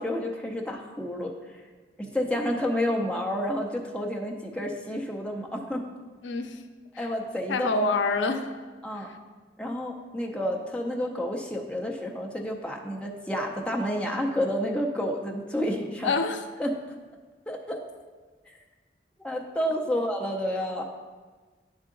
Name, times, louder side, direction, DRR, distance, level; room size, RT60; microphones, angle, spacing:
voice 1, 0.0-1.3 2.0-5.8 7.0-7.8 8.8-9.1 9.6-16.1 16.6-16.8 17.5-17.8 18.5-18.6 19.2-20.8, equal, 5° left, 0 dB, 0.6 m, -30 dB
voice 2, 6.2-6.6 7.0-7.1 7.5-8.5 9.0-9.1 16.0-16.4, left 3 dB, 85° left, 7 dB, 0.5 m, -26 dB
9.8 x 3.7 x 3.8 m, 1.4 s
head